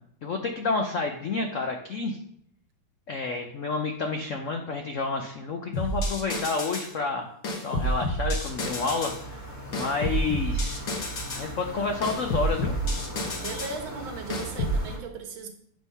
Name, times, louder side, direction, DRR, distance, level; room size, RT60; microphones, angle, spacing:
voice 1, 0.2-2.2 3.1-7.3 7.6-9.3 9.7-10.9 11.3-12.8, left 3 dB, 80° left, 3 dB, 0.6 m, -29 dB
sound 1, 5.7-6.9 7.4-9.2 9.7-11.5 12.0-13.8 14.3-14.8, equal, 45° left, 1.5 m, -29 dB
sound 2, 8.4-15.0, equal, 10° left, 1.2 m, -40 dB
voice 2, 13.4-15.5, right 4 dB, 75° right, 4 dB, 1.9 m, -37 dB
9.0 x 3.7 x 5.5 m, 0.68 s
omnidirectional pair, 2.3 m